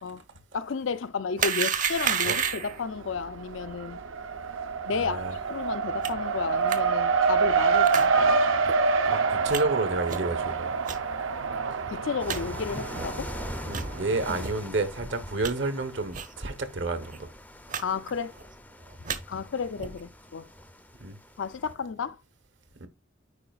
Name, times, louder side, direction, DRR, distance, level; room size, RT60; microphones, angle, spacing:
voice 1, 0.5-4.0 4.9-5.2 5.5-8.4 11.9-13.3 14.2-14.4 17.8-18.3 19.3-20.5 21.4-22.2, left 5 dB, 80° left, 0.5 m, -32 dB
sound 1, 1.4-2.8 6.0-6.1 6.7-6.8 7.8-8.1 8.6-8.7 9.5-9.6 10.1-10.3 10.8-11.0 11.5-11.6 11.9-12.0 12.3-12.4 12.9-13.1 13.7-13.9 14.4-14.5 15.0-15.5 16.1-16.3 16.6-16.7 17.0-17.2 17.7-17.8 18.1-18.5 18.9-19.2 19.8-20.0, right 6 dB, 40° right, 0.8 m, -30 dB
Race car auto racing, 2.0-2.7 3.0-14.4, right 5 dB, 85° right, 0.7 m, -27 dB
voice 2, 4.9-5.4 9.0-10.8 13.7-17.3 21.0-21.2 22.8-22.9, right 3 dB, 65° right, 1.1 m, -30 dB
sound 2, 12.2-21.7, left 1 dB, 10° left, 0.5 m, -42 dB
9.8 x 4.9 x 2.4 m
head